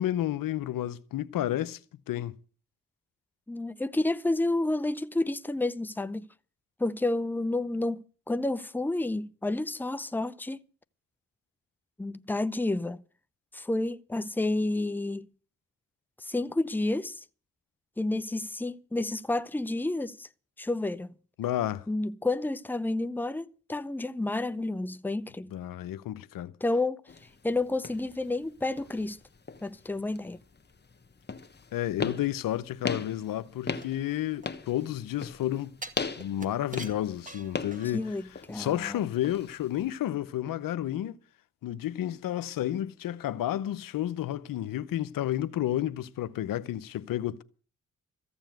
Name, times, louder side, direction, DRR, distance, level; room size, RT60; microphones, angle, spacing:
voice 1, 0.0-1.8 2.1-2.3 21.4-21.9 25.5-26.5 31.7-35.7 36.2-38.0 38.5-41.2 41.6-47.4, left 12 dB, 80° left, 0.7 m, -31 dB
voice 2, 3.5-6.3 6.8-10.6 12.0-13.0 13.5-15.3 16.2-17.2 18.0-20.3 20.6-21.1 21.9-25.5 26.6-27.0 27.4-29.2 29.6-30.4 37.9-39.0, left 2 dB, 5° left, 0.7 m, -30 dB
sound 1, 27.1-40.0, left 4 dB, 30° left, 1.3 m, -39 dB
sound 2, 33.8-35.0 35.8-38.2 38.5-38.6, right 2 dB, 25° right, 2.0 m, -45 dB
14.5 x 7.1 x 9.2 m
supercardioid pair, 45°, 33 cm